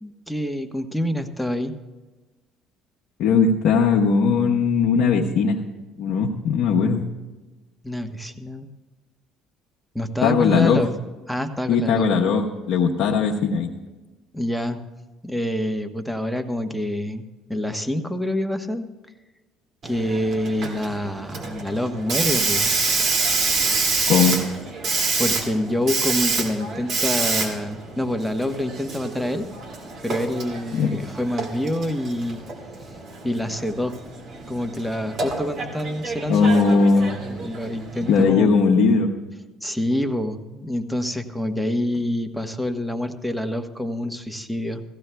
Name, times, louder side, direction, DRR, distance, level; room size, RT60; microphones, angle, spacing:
voice 1, 0.0-1.7 7.8-8.7 9.9-10.9 11.3-12.1 14.3-14.8 15.2-18.9 19.8-22.7 25.2-29.5 30.0-32.5 33.2-33.9 34.5-38.5 39.6-44.8, left 1 dB, ahead, 7 dB, 1.1 m, -27 dB
voice 2, 3.2-5.6 6.0-7.1 10.2-10.8 11.7-13.7 24.1-24.4 30.7-30.9 36.3-37.2 38.1-39.1, left 5 dB, 65° left, -1 dB, 1.0 m, -19 dB
Hiss, 19.8-38.2, right 4 dB, 60° right, 2.3 m, -27 dB
17.5 x 15.5 x 2.3 m, 1.2 s
hypercardioid pair, 70°, 0 cm